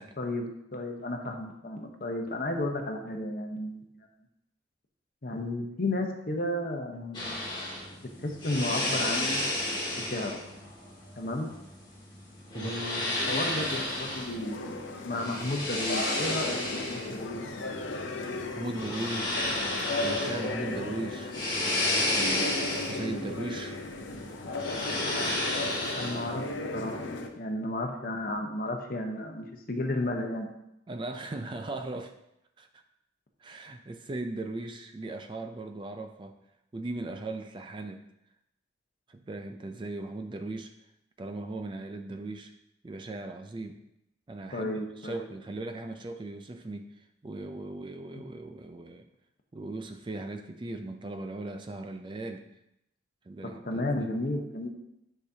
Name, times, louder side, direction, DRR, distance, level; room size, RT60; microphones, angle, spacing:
voice 1, 0.2-4.1 5.2-7.4 8.0-9.4 10.0-10.4 11.2-11.5 12.5-17.5 25.9-26.4 26.7-27.0 27.4-30.5 44.5-45.3 48.1-48.2 53.4-54.7, left 1 dB, 50° left, 3 dB, 0.9 m, -33 dB
sound 1, 7.1-26.5, left 1 dB, 25° left, 1.9 m, -33 dB
voice 2, 12.5-12.9 18.5-19.4 20.0-21.3 22.1-23.8 30.9-32.1 32.6-32.7 33.4-36.4 36.7-38.1 39.1-40.7 41.2-42.5 42.8-43.9 44.3-44.7 45.0-49.1 49.5-52.5 53.2-54.1, right 2 dB, 25° right, 6 dB, 0.3 m, -38 dB
sound 2, 13.2-27.3, left 2 dB, 75° left, 0.7 m, -36 dB
9.4 x 5.0 x 2.7 m, 0.83 s
head